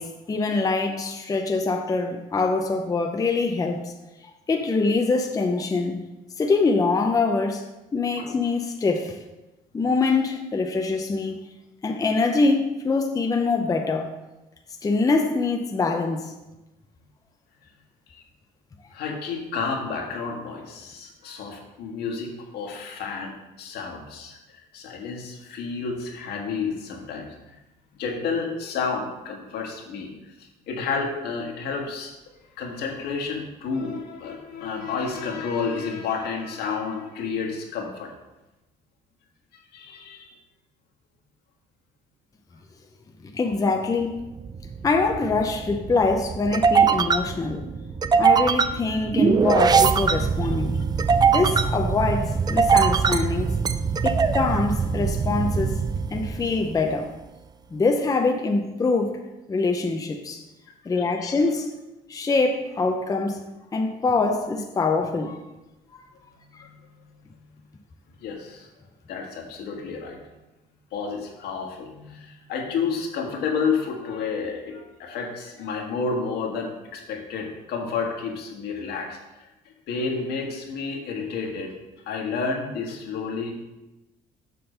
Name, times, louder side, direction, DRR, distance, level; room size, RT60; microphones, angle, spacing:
voice 1, 0.0-3.8 4.5-6.0 6.4-7.7 7.9-9.2 9.7-11.4 11.8-14.1 14.8-16.3 43.3-44.3 44.8-47.7 48.2-50.8 51.3-53.5 54.0-55.8 56.1-57.1 57.7-59.2 59.5-60.4 60.9-61.7 62.1-63.4 63.7-65.4 66.5-66.7, left 3 dB, 20° left, 4 dB, 0.6 m, -24 dB
voice 2, 18.9-27.5 28.0-30.1 30.4-32.1 32.5-38.1 39.5-40.3 50.4-50.5 54.0-54.3 60.9-61.3 66.6-66.7 68.2-68.7 69.1-70.2 70.9-81.7 82.0-83.5, left 5 dB, 75° left, 1 dB, 1.6 m, -31 dB
sound 1, 44.2-56.9, right 6 dB, 25° right, 0.4 m, -22 dB
6.9 x 3.8 x 6.5 m, 1.0 s
cardioid pair, 110°, 17 cm